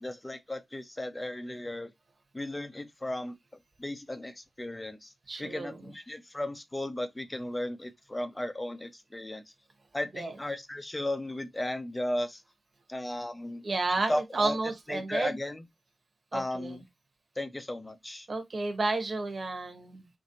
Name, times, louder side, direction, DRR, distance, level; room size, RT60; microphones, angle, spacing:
voice 1, 0.0-1.9 2.3-3.4 3.8-5.1 5.4-9.4 9.9-12.4 12.9-14.6 14.9-15.7 16.3-16.8 17.4-18.3, left 1 dB, 15° left, 0.5 m, -35 dB
voice 2, 5.3-5.7 10.1-10.3 13.6-15.4 16.3-16.8 18.3-20.1, right 3 dB, 50° right, 0.9 m, -31 dB
4.1 x 2.6 x 2.8 m
wide cardioid pair, 120°, 0 cm